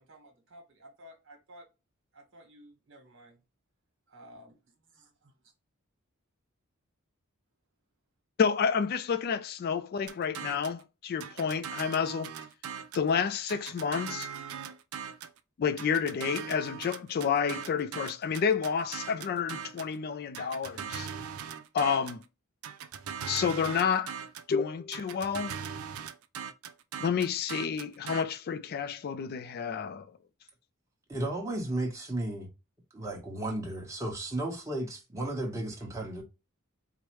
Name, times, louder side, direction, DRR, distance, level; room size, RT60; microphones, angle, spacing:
voice 1, 0.0-1.7 2.1-3.4 4.1-5.3, equal, 65° right, 1.3 m, -54 dB
voice 2, 8.4-12.3 12.9-14.3 15.6-21.1 21.7-22.2 23.3-24.2 24.5-25.6 27.0-30.1, left 6 dB, 45° left, 0.3 m, -30 dB
sound 1, 10.1-10.8 11.2-13.1 13.5-15.4 15.8-19.9 20.3-22.2 22.6-24.5 24.9-28.2, right 7 dB, 90° right, 0.5 m, -40 dB
voice 3, 31.1-32.5 32.9-36.2, right 1 dB, 15° right, 1.1 m, -34 dB
4.6 x 2.1 x 3.1 m
head